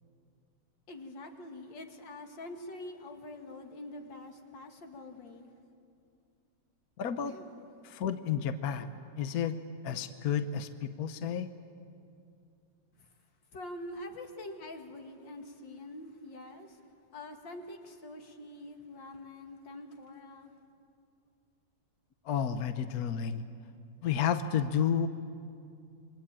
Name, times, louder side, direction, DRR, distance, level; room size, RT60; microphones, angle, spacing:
voice 1, 0.9-5.5 7.3-7.5 13.0-13.1 13.5-16.8 17.1-20.5, left 1 dB, 80° left, 4 dB, 2.7 m, -45 dB
voice 2, 7.0-7.3 7.8-8.9 9.2-9.6 9.8-11.5 22.3-23.4 24.0-25.1, left 8 dB, 60° left, 9 dB, 1.3 m, -31 dB
27.5 x 24.5 x 8.8 m, 2.4 s
omnidirectional pair, 2.0 m